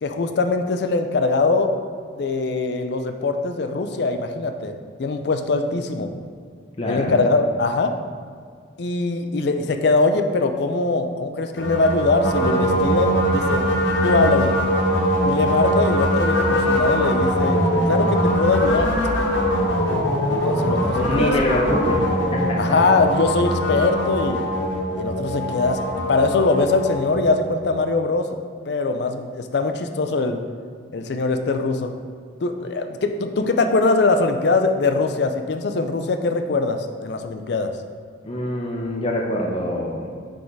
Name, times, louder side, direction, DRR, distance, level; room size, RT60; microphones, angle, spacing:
voice 1, 0.0-1.8 2.2-6.1 6.8-7.9 8.8-13.7 14.0-14.5 15.2-18.9 20.2-21.3 22.6-24.4 24.9-28.4 28.7-30.4 30.9-31.9 32.4-37.7, left 3 dB, 60° left, 6 dB, 0.4 m, -22 dB
voice 2, 6.8-7.1 20.9-22.0 22.3-22.6 38.2-40.1, left 1 dB, 30° left, -1 dB, 0.8 m, -24 dB
sound 1, 11.6-27.8, equal, 85° left, 1.1 m, -22 dB
6.3 x 3.6 x 4.6 m, 2.1 s
head